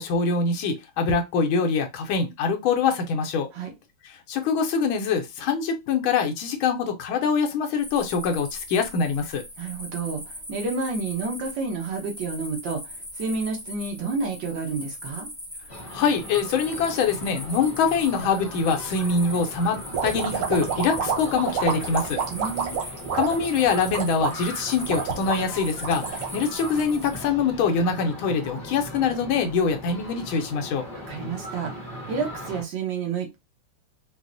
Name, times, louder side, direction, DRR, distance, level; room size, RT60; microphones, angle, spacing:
voice 1, 0.0-3.5 4.0-9.4 15.9-22.2 23.1-30.8, left 5 dB, 75° left, 1.4 m, -24 dB
sound 1, 7.8-27.2, left 1 dB, 10° right, 0.9 m, -40 dB
voice 2, 9.6-15.3 22.3-22.8 31.1-31.7 32.1-33.4, right 4 dB, 65° right, 1.6 m, -30 dB
sound 2, 15.7-32.6, equal, 50° left, 0.7 m, -39 dB
sound 3, 19.9-27.2, right 7 dB, 90° right, 1.9 m, -29 dB
4.6 x 2.0 x 2.5 m
omnidirectional pair, 2.3 m